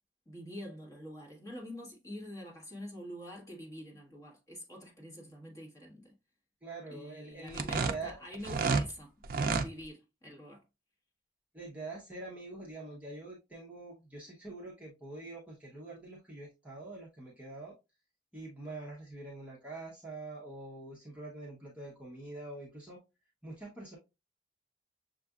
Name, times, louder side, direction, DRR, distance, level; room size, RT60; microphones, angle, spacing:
voice 1, 0.3-6.1 6.9-9.1 9.4-10.6, equal, 15° left, 1.3 m, -46 dB
voice 2, 6.6-8.2 11.5-17.7 18.3-23.0 23.4-24.0, right 2 dB, 5° right, 0.9 m, -45 dB
sound 1, 7.5-8.9 9.2-9.7, right 4 dB, 50° right, 0.4 m, -30 dB
6.6 x 2.5 x 2.3 m
head